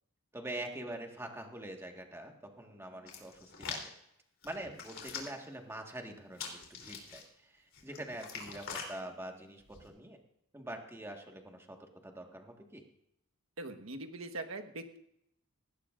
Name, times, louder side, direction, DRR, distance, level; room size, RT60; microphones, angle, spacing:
voice 1, 0.3-3.9 4.4-10.2 10.5-12.8, right 1 dB, 10° right, 2 dB, 1.7 m, -45 dB
Hands, 3.1-3.9 4.4-5.5 6.3-7.2 7.7-8.9 9.6-9.9, left 6 dB, 65° left, 3.5 m, -43 dB
voice 2, 13.6-15.0, right 2 dB, 75° right, 6 dB, 1.4 m, -42 dB
19.0 x 16.5 x 2.6 m, 0.78 s
head